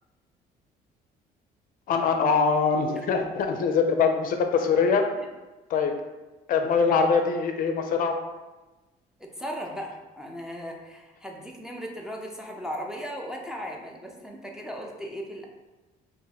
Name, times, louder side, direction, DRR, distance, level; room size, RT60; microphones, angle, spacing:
voice 1, 1.9-5.1 5.7-5.9 6.5-8.2, left 5 dB, 55° left, 5 dB, 0.4 m, -23 dB
voice 2, 9.2-15.5, equal, 5° right, -1 dB, 0.4 m, -37 dB
2.6 x 2.5 x 3.9 m, 1.1 s
cardioid pair, 110°, 17 cm